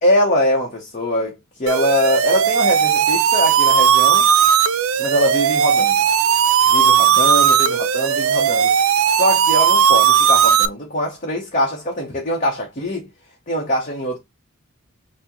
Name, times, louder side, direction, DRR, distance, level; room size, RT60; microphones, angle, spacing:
voice 1, 0.0-4.3 5.0-6.0 6.7-8.7 9.1-13.1 13.5-14.2, left 1 dB, 35° left, 0.8 m, -22 dB
sound 1, 1.7-10.7, right 8 dB, 70° right, 0.4 m, -16 dB
5.6 x 2.1 x 2.9 m
head